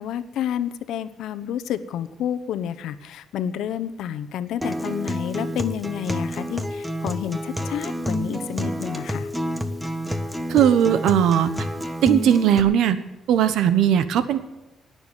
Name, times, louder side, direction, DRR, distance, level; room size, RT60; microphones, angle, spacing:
voice 1, 0.0-9.3, left 10 dB, 80° left, 11 dB, 0.9 m, -30 dB
Acoustic guitar, 4.6-12.6, equal, 5° right, 1.3 m, -29 dB
voice 2, 10.5-11.5 12.0-13.0 13.3-14.4, right 9 dB, 80° right, 12 dB, 1.2 m, -18 dB
18.5 x 7.0 x 9.8 m, 1.0 s
cardioid pair, 90°, 0 cm